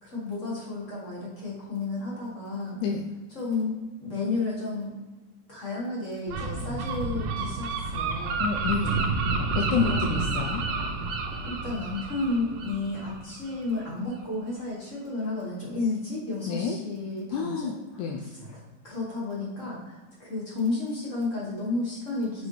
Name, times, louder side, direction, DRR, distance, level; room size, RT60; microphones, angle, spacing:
voice 1, 0.0-2.8 3.3-4.9 5.5-8.5 9.2-9.4 9.8-10.1 11.4-22.5, left 3 dB, 40° left, -5 dB, 1.1 m, -32 dB
Gull seagull, 6.3-13.8, right 3 dB, 70° right, 1.9 m, -30 dB
voice 2, 8.4-9.0 9.6-10.6 16.5-16.8 17.3-18.2, left 6 dB, 80° left, 1 dB, 1.9 m, -29 dB
6.3 x 5.2 x 3.3 m, 1.2 s
omnidirectional pair, 3.5 m